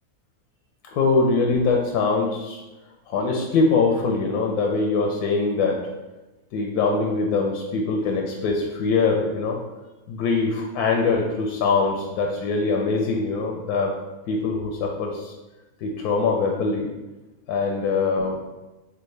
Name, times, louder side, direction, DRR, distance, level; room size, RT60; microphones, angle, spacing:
voice 1, 0.9-2.6 3.1-5.8 6.5-9.6 10.1-14.0 14.3-15.3 15.8-16.9 17.5-18.4, left 4 dB, 85° left, 1 dB, 1.1 m, -23 dB
4.6 x 2.4 x 3.2 m, 1.1 s
omnidirectional pair, 1.6 m